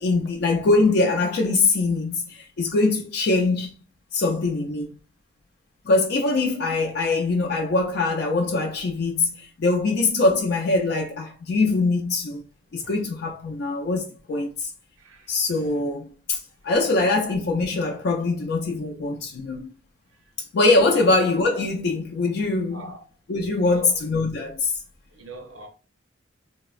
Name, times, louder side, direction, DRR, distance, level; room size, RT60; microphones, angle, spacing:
voice 1, 0.0-3.7 4.1-4.9 5.9-12.4 12.7-14.7 15.3-19.7 20.5-22.8 23.3-24.7, left 3 dB, 60° left, 0.4 m, -23 dB
voice 2, 15.0-15.4 20.9-21.1 22.7-23.0 23.6-24.0 25.1-25.7, right 3 dB, 90° right, 0.7 m, -42 dB
3.4 x 2.0 x 2.3 m
head